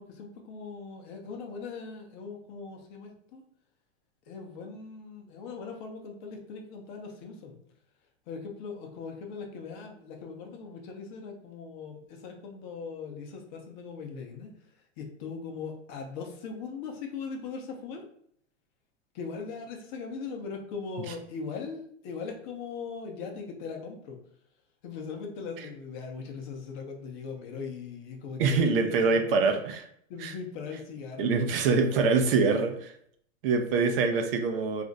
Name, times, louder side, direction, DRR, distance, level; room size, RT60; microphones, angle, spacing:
voice 1, 0.0-3.4 4.3-7.6 8.3-14.5 15.0-18.0 19.1-24.2 24.8-29.6 30.1-31.5 31.9-32.7, left 5 dB, 40° left, 2 dB, 0.6 m, -40 dB
voice 2, 28.4-29.8 30.2-30.3 31.2-32.9 33.4-34.8, right 4 dB, 50° right, 5 dB, 0.5 m, -25 dB
2.5 x 2.1 x 3.8 m, 0.68 s
supercardioid pair, 145°, 37 cm